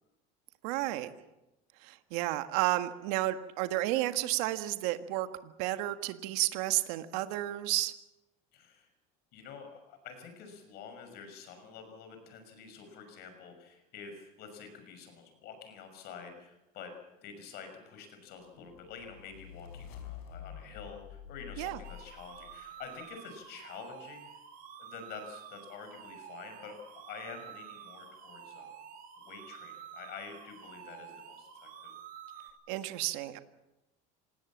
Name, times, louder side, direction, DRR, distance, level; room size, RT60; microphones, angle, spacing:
voice 1, 0.6-1.1 1.8-7.9 21.6-21.8 32.7-33.4, right 16 dB, 80° right, 9 dB, 1.7 m, -32 dB
voice 2, 8.5-8.9 9.3-16.9 17.2-24.3 24.8-28.7 29.2-31.9, left 6 dB, 55° left, 6 dB, 6.1 m, -48 dB
sound 1, 18.6-22.9, left 9 dB, 85° left, 4.7 m, -48 dB
sound 2, 21.8-32.5, right 8 dB, 45° right, 5.4 m, -49 dB
27.0 x 19.0 x 7.4 m, 0.96 s
cardioid pair, 135°, 19 cm